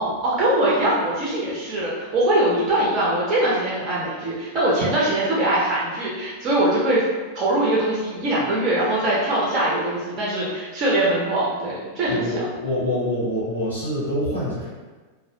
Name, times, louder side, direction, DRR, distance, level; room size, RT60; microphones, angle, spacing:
voice 1, 0.0-7.0 7.3-12.2, right 1 dB, 35° right, -6 dB, 0.6 m, -22 dB
voice 2, 12.1-14.7, left 1 dB, 85° right, -8 dB, 1.1 m, -25 dB
2.3 x 2.1 x 2.6 m, 1.3 s
figure-of-eight pair, 90°, 0 cm